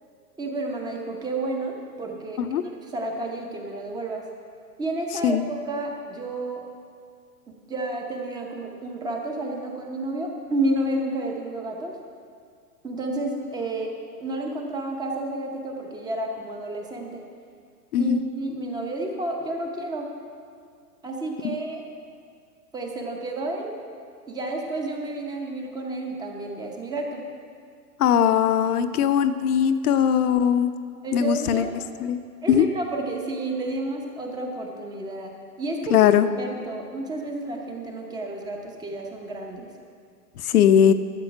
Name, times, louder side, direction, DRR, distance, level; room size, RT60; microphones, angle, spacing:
voice 1, 0.4-4.2 4.8-6.6 7.5-12.0 12.8-13.9 14.2-17.2 18.0-20.1 21.0-21.8 22.7-23.7 24.3-27.2 31.0-31.8 32.4-36.0 36.4-39.7, right 2 dB, 10° right, 1 dB, 0.7 m, -31 dB
voice 2, 28.0-30.7 31.1-31.6 32.0-32.2 32.5-32.7 35.9-36.3 40.5-40.9, left 9 dB, 65° left, 11 dB, 0.8 m, -19 dB
13.0 x 7.7 x 5.9 m, 2.2 s
hypercardioid pair, 140°, 49 cm